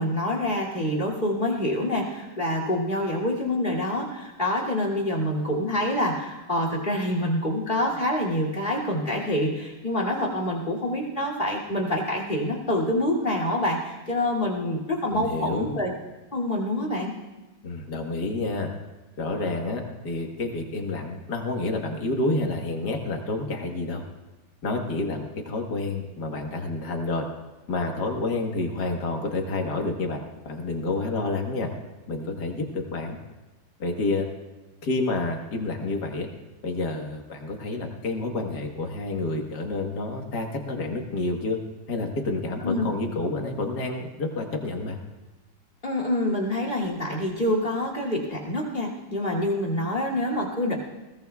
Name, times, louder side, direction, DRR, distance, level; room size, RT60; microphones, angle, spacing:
voice 1, 0.0-15.9 16.3-17.1 42.6-42.9 45.8-50.8, left 1 dB, 25° left, 0 dB, 2.7 m, -26 dB
voice 2, 15.1-15.8 17.6-18.7 19.2-24.0 24.6-27.3 27.7-31.7 32.1-33.2 33.8-34.3 34.8-36.3 36.6-41.6 41.9-45.0, left 2 dB, 55° left, 2 dB, 2.0 m, -29 dB
21.0 x 18.0 x 2.3 m, 1.1 s
omnidirectional pair, 2.1 m